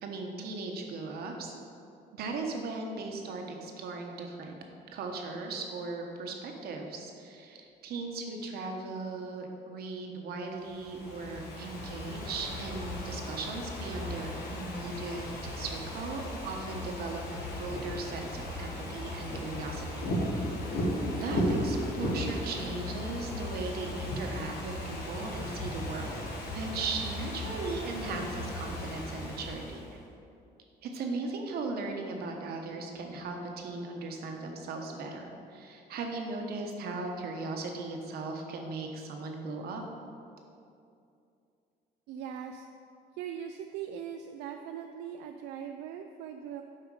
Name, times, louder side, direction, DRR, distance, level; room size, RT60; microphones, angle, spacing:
voice 1, 0.0-1.5 2.1-4.6 4.9-20.5 21.1-26.2 26.5-29.8 30.8-39.8, right 3 dB, 65° right, 2 dB, 1.1 m, -38 dB
Ocean / Fireworks, 10.7-29.9, left 1 dB, 70° left, 1.6 m, -36 dB
voice 2, 42.1-42.7 43.2-46.6, right 8 dB, 85° right, 5 dB, 0.4 m, -40 dB
7.6 x 4.9 x 4.8 m, 2.6 s
cardioid pair, 110°, 17 cm